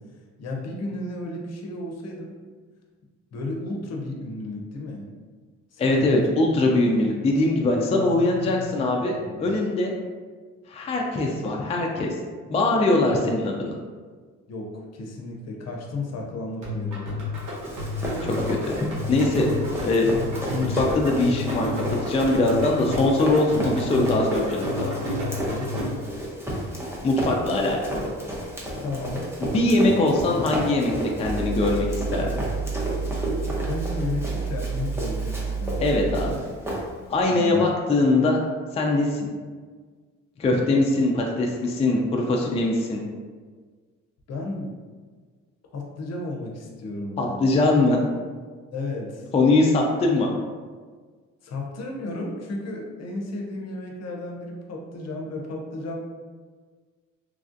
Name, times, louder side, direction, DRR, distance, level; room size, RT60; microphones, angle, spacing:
voice 1, 0.4-2.3 3.3-5.1 5.7-6.3 7.0-7.1 7.8-9.6 14.5-17.0 25.0-26.0 28.7-29.3 33.7-36.0 37.3-37.7 44.3-44.8 45.7-47.5 48.7-49.3 51.4-56.0, left 2 dB, 55° left, 0 dB, 0.7 m, -33 dB
voice 2, 5.8-9.9 10.7-12.1 12.5-13.8 18.2-18.7 19.1-19.5 19.8-20.2 20.5-21.7 22.0-24.9 27.0-28.0 29.4-30.9 31.2-32.3 35.8-36.4 37.1-38.4 38.7-39.3 40.4-43.0 47.2-48.0 49.3-50.3, left 2 dB, 20° left, 0 dB, 0.3 m, -22 dB
sound 1, 16.6-26.1, left 2 dB, 80° right, 0.9 m, -31 dB
Run, 17.3-37.2, right 1 dB, 10° right, 0.7 m, -32 dB
sound 2, 31.2-36.3, right 5 dB, 55° right, 1.5 m, -30 dB
3.2 x 2.3 x 2.5 m, 1.5 s
cardioid pair, 90°, 30 cm